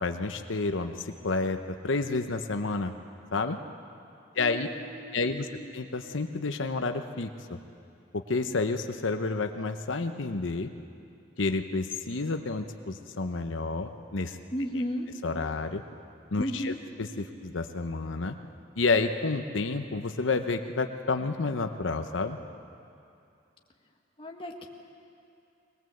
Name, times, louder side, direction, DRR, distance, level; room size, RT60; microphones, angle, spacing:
voice 1, 0.0-2.9 3.3-3.6 4.3-4.7 5.1-5.5 5.7-7.6 8.1-10.7 11.4-14.4 14.7-14.8 15.2-15.8 16.3-18.4 18.8-22.4, left 3 dB, 90° left, 6 dB, 0.9 m, -30 dB
voice 2, 4.4-5.7 14.5-15.1 16.4-16.8 24.2-24.7, equal, 30° left, 2 dB, 1.7 m, -35 dB
22.0 x 20.0 x 7.9 m, 2.6 s
head